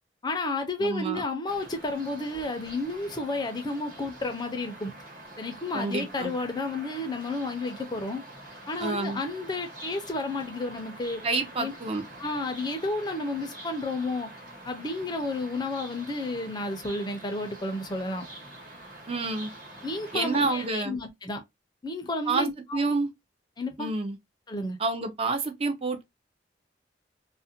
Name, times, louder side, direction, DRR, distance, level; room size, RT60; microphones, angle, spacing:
voice 1, 0.2-4.9 5.4-8.2 8.7-11.2 11.6-11.7 12.2-14.3 14.7-18.3 19.8-21.4 21.8-22.8 23.6-23.9 24.5-24.8, left 2 dB, 25° left, 0.4 m, -31 dB
voice 2, 0.8-1.2 5.7-6.3 8.8-9.2 11.2-12.0 19.1-19.5 20.1-21.0 22.3-22.5 22.7-23.1 23.8-24.2 24.8-26.0, right 3 dB, 35° right, 0.4 m, -28 dB
sound 1, 1.5-20.7, right 1 dB, 50° right, 1.1 m, -46 dB
2.4 x 2.1 x 2.7 m
head